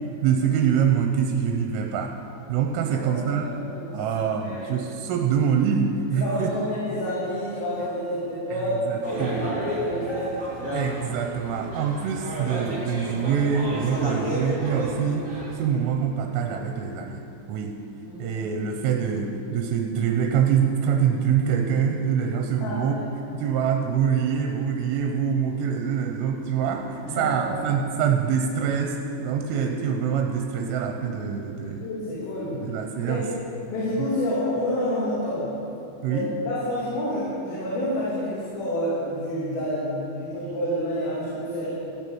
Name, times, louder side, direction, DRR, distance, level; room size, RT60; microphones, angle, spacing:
voice 1, 0.2-2.2 2.5-3.5 3.9-6.5 8.5-9.6 10.7-15.3 15.5-17.2 17.5-17.8 18.2-23.0 23.3-31.8 32.6-33.3 36.0-36.3, right 7 dB, 80° right, 3 dB, 3.3 m, -25 dB
voice 2, 2.9-4.8 6.2-10.3 18.1-18.2 22.5-23.0 27.1-27.4 31.8-32.6 33.1-33.3 33.7-35.5 36.1-41.7, left 1 dB, 80° left, -9 dB, 5.4 m, -29 dB
sound 1, 9.0-15.5, equal, 25° right, 1.6 m, -32 dB
16.0 x 6.9 x 8.5 m, 3.0 s
omnidirectional pair, 5.8 m